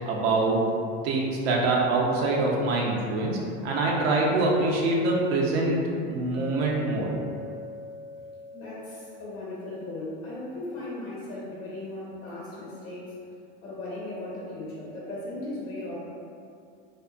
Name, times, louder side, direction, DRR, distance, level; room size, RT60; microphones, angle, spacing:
voice 1, 0.1-0.7 1.0-5.8 6.1-7.1, right 2 dB, 90° right, -2 dB, 0.5 m, -24 dB
Chink clink, 6.3-10.5, left 1 dB, 5° right, 0.3 m, -42 dB
voice 2, 8.5-13.1 13.6-16.0, left 2 dB, 50° left, -6 dB, 1.1 m, -37 dB
2.6 x 2.1 x 2.4 m, 2.3 s
supercardioid pair, 110°, 30 cm